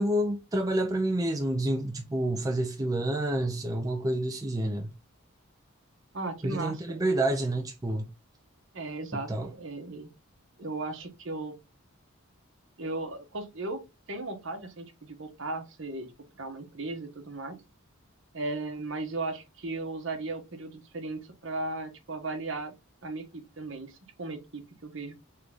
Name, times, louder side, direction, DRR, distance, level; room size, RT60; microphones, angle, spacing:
voice 1, 0.0-4.9 6.4-8.1 9.1-9.5, right 1 dB, 15° right, 0.4 m, -28 dB
voice 2, 6.1-7.0 8.7-10.1 10.6-11.5 12.8-13.8 14.1-16.1 16.4-17.6 18.3-22.7 23.0-25.2, right 2 dB, 60° right, 1.0 m, -36 dB
3.7 x 3.3 x 3.5 m
head